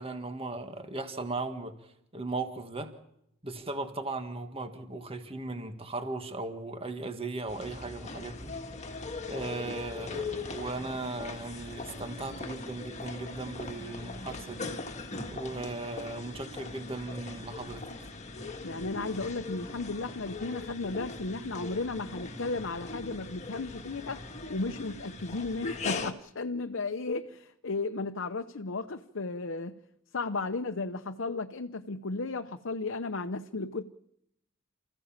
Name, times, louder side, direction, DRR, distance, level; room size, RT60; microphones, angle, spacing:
voice 1, 0.0-1.7 2.1-2.9 3.4-8.5 9.3-14.8 15.3-17.8, right 3 dB, 30° right, 1.8 m, -37 dB
sound 1, 7.5-26.1, left 3 dB, 35° left, 1.7 m, -40 dB
voice 2, 18.6-29.8 30.1-33.9, left 3 dB, 65° left, 0.8 m, -34 dB
29.0 x 15.5 x 7.4 m
head